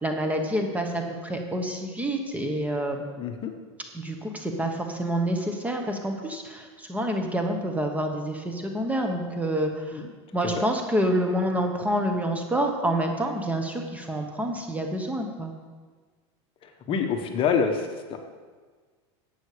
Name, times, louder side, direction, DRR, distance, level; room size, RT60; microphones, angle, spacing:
voice 1, 0.0-3.0 3.9-10.0 10.3-15.5, right 1 dB, 10° right, 3 dB, 1.1 m, -27 dB
voice 2, 3.2-3.5 9.9-10.1 10.6-10.7 16.9-18.2, left 6 dB, 35° left, 5 dB, 1.2 m, -26 dB
11.5 x 8.2 x 5.0 m, 1.5 s
supercardioid pair, 125°, 15 cm